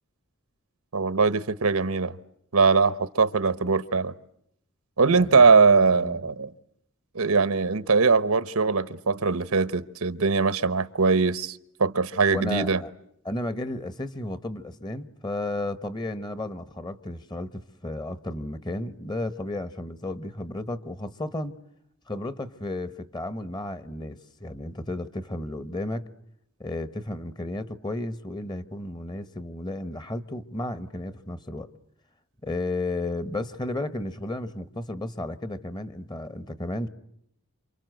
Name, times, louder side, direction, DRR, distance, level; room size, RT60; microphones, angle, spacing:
voice 1, 0.9-2.2 2.5-4.1 5.0-6.5 7.1-12.8, right 4 dB, 80° right, 1.1 m, -21 dB
voice 2, 5.1-5.4 6.0-6.2 12.3-12.9 13.2-21.6 22.1-26.1 26.6-31.7 32.4-36.9, left 1 dB, 20° left, 1.1 m, -33 dB
28.5 x 27.0 x 7.9 m
head